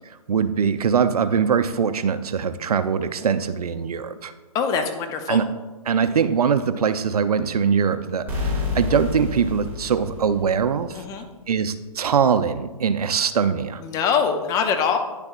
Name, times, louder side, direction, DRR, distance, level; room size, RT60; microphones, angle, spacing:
voice 1, 0.3-4.3 5.3-5.5 5.9-11.0 11.5-13.8, right 6 dB, 75° right, 11 dB, 0.6 m, -22 dB
voice 2, 4.5-5.4 10.9-11.2 13.8-15.0, left 6 dB, 20° left, 6 dB, 0.5 m, -23 dB
sound 1, 8.3-11.0, left 4 dB, 10° right, 2.2 m, -29 dB
10.0 x 6.9 x 2.5 m, 1.2 s
hypercardioid pair, 130°, 20 cm